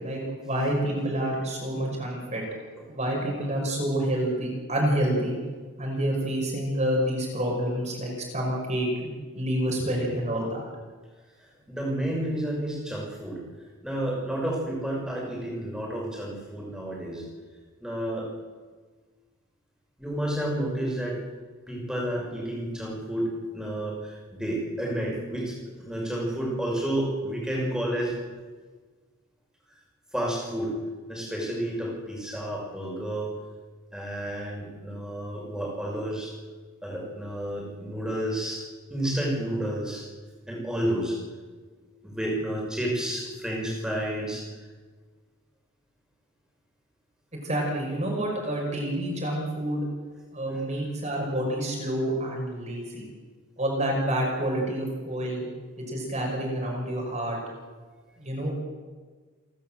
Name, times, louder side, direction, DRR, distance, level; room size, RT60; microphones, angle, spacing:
voice 1, 0.0-2.4 2.9-5.4 5.8-9.1 9.3-10.6 47.4-49.9 50.3-53.1 53.6-55.5 55.8-57.4 58.2-58.5, right 1 dB, 30° right, -1 dB, 5.7 m, -28 dB
voice 2, 11.4-13.4 13.8-17.2 17.8-18.3 20.0-21.2 21.7-28.2 30.1-30.8 31.1-33.3 33.9-36.3 36.8-38.6 38.9-40.0 40.5-41.2 42.0-44.4 50.5-50.6, right 1 dB, 5° right, -2 dB, 6.0 m, -30 dB
29.0 x 12.5 x 7.6 m, 1.4 s
head